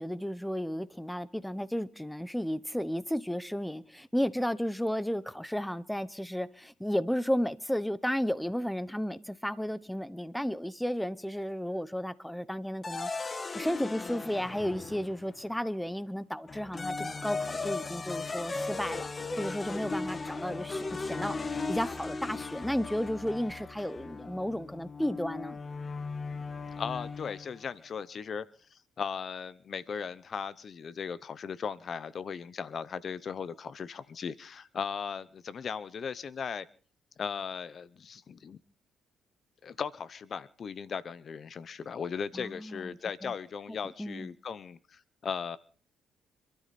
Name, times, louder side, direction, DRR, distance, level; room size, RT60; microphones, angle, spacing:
voice 1, 0.0-19.1 19.4-25.6 42.3-43.0 43.2-43.3 44.0-44.3, equal, 5° left, 0.9 m, -33 dB
sound 1, 12.8-15.4 16.5-27.6, left 3 dB, 30° left, 1.3 m, -37 dB
voice 2, 26.8-28.4 28.7-36.7 37.2-38.6 39.6-45.6, left 6 dB, 50° left, 0.8 m, -37 dB
26.0 x 12.5 x 4.2 m
cardioid pair, 90°, 0 cm